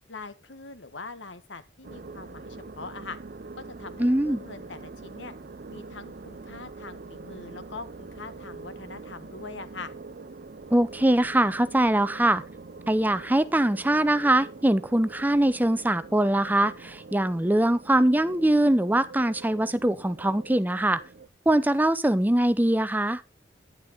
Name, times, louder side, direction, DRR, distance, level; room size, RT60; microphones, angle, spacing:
voice 1, 0.1-3.2 3.8-5.3 5.7-9.9, left 4 dB, 90° left, 1.5 m, -42 dB
sound 1, 1.8-21.3, right 3 dB, 50° right, 0.6 m, -44 dB
voice 2, 4.0-4.4 10.7-12.4 12.9-21.0 21.5-23.2, right 1 dB, 10° right, 0.6 m, -22 dB
11.5 x 10.5 x 3.9 m
head